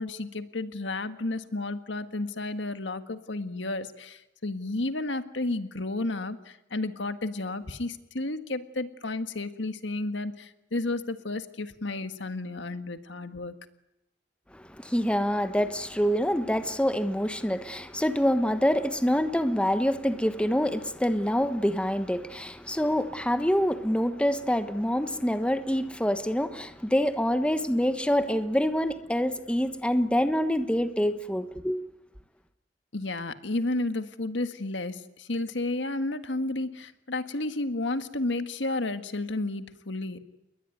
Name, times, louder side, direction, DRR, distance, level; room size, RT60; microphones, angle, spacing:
voice 1, 0.0-13.5 32.9-40.2, left 2 dB, 75° left, 1.7 m, -32 dB
voice 2, 14.5-31.8, equal, 5° left, 1.2 m, -26 dB
29.5 x 21.5 x 9.4 m
head